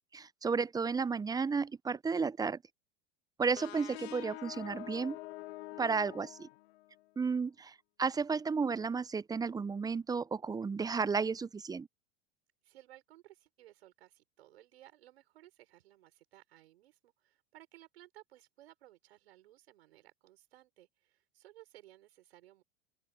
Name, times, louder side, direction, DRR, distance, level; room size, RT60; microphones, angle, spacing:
voice 1, 0.1-2.6 3.4-5.2 5.8-6.5 7.2-11.9, right 5 dB, 10° right, 0.6 m, -33 dB
sound 1, 3.6-7.1, left 18 dB, 75° left, 0.7 m, -46 dB
voice 2, 12.6-22.6, right 14 dB, 80° right, 5.8 m, -59 dB
open air
hypercardioid pair, 95°, 31 cm